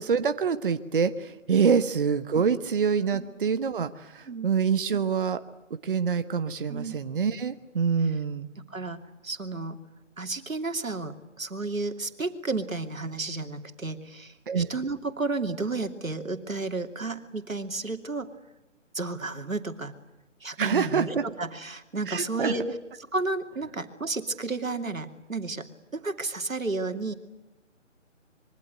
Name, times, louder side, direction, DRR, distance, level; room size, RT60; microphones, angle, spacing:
voice 1, 0.0-5.4 5.7-8.5 14.5-14.7 20.6-21.2 22.1-22.5, right 6 dB, 40° right, 10 dB, 1.2 m, -26 dB
voice 2, 8.7-9.8 10.2-18.3 18.9-19.9 20.4-22.7 23.1-27.1, right 3 dB, 90° right, 7 dB, 2.9 m, -32 dB
26.0 x 23.5 x 9.1 m, 0.97 s
figure-of-eight pair, 155°, 39 cm